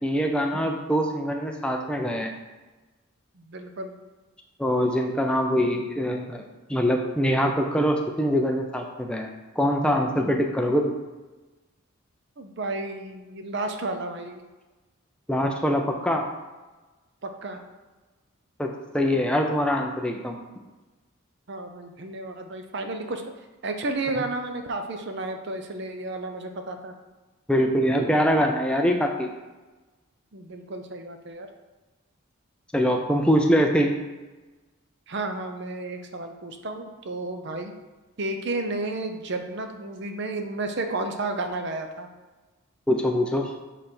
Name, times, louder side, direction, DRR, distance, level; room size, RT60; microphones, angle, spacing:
voice 1, 0.0-2.3 4.6-6.4 6.7-9.3 9.6-10.9 15.3-16.2 18.6-20.4 27.5-29.3 32.7-33.9 42.9-43.5, equal, 5° left, 2 dB, 0.5 m, -23 dB
voice 2, 3.3-4.0 12.4-14.4 17.2-17.6 21.5-23.2 23.6-26.9 30.3-31.5 35.1-37.7 38.2-42.1, right 2 dB, 50° right, 6 dB, 0.6 m, -32 dB
7.4 x 3.3 x 4.4 m, 1.2 s
head